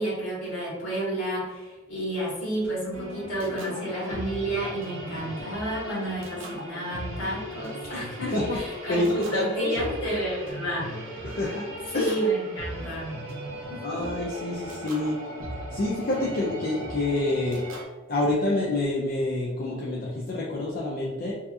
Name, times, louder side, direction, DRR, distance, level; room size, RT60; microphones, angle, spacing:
voice 1, 0.0-10.9 11.9-13.2 13.7-14.0, right 1 dB, 70° left, -7 dB, 1.4 m, -31 dB
sound 1, 2.9-17.8, right 1 dB, 80° right, 0.6 m, -38 dB
voice 2, 8.9-9.7 11.2-11.7 11.9-12.1 13.8-15.2 15.4-17.6 18.1-21.3, left 2 dB, 50° left, -4 dB, 0.4 m, -27 dB
2.7 x 2.5 x 2.3 m, 1.2 s
head